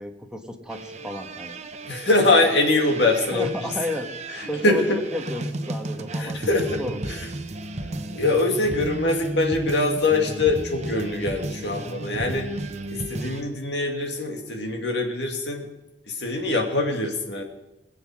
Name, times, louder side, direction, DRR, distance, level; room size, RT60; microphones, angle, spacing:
voice 1, 0.0-1.6 3.3-4.1 4.5-6.4 6.8-7.0, left 1 dB, 5° right, 3 dB, 1.3 m, -32 dB
sound 1, 0.7-13.4, right 2 dB, 40° right, 0.9 m, -34 dB
voice 2, 1.9-3.5 4.6-4.8 6.2-6.8 8.1-12.5 12.9-15.7 16.1-17.4, left 2 dB, 70° left, 2 dB, 2.4 m, -23 dB
21.5 x 7.7 x 6.2 m, 0.96 s
head